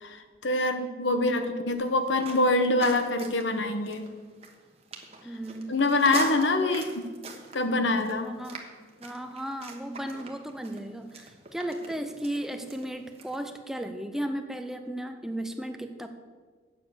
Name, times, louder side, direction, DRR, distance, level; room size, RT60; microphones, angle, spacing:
voice 1, 0.0-4.1 5.7-7.0 7.5-8.3, left 2 dB, 80° left, 7 dB, 1.0 m, -25 dB
voice 2, 1.1-1.7 5.2-5.8 6.6-6.8 8.2-8.6 9.0-16.1, right 1 dB, ahead, 7 dB, 0.5 m, -35 dB
sound 1, 1.7-13.4, right 4 dB, 35° right, 1.2 m, -43 dB
8.6 x 7.1 x 6.9 m, 1.5 s
head